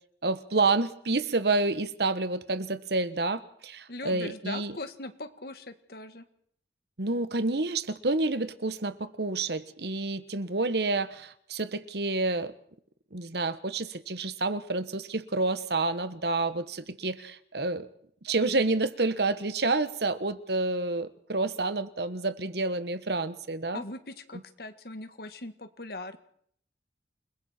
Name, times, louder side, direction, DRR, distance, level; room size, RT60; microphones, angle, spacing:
voice 1, 0.2-4.7 7.0-12.5 13.1-17.9 18.2-23.8, right 3 dB, 65° right, 13 dB, 1.3 m, -29 dB
voice 2, 3.9-6.3 23.7-26.2, left 2 dB, 60° left, 9 dB, 1.8 m, -40 dB
29.0 x 21.0 x 4.5 m, 0.64 s
head